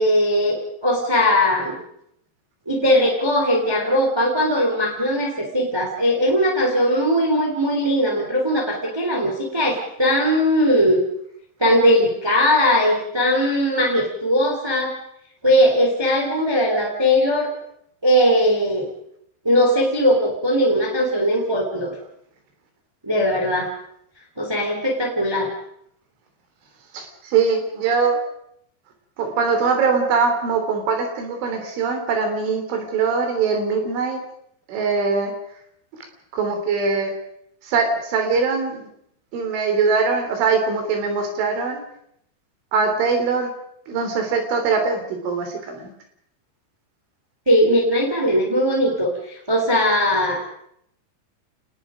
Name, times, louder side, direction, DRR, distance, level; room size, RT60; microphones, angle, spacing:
voice 1, 0.0-1.8 2.7-11.0 11.6-14.9 15.4-17.5 18.0-18.9 19.4-21.9 23.0-23.7 24.4-25.5 47.5-50.5, equal, 5° right, 0 dB, 2.6 m, -19 dB
voice 2, 26.9-28.2 29.2-34.2 34.7-35.3 36.3-37.1 37.6-38.9 39.3-41.8 42.7-43.5 43.9-45.9, right 5 dB, 80° right, 5 dB, 5.8 m, -22 dB
29.5 x 19.5 x 5.2 m, 0.72 s
omnidirectional pair, 5.5 m